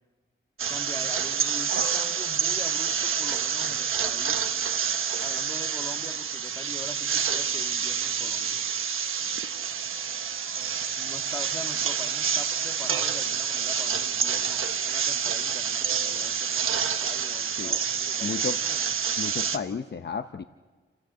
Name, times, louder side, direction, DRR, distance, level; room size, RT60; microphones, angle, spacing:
sound 1, 0.6-19.6, right 7 dB, 80° right, 1.1 m, -28 dB
voice 1, 0.7-4.5 5.2-8.6 11.0-19.1, left 1 dB, 15° left, 5 dB, 1.9 m, -43 dB
voice 2, 18.2-18.6 19.2-20.4, left 6 dB, 55° left, 9 dB, 0.8 m, -32 dB
29.5 x 14.5 x 8.7 m, 1.4 s
wide cardioid pair, 100°, 21 cm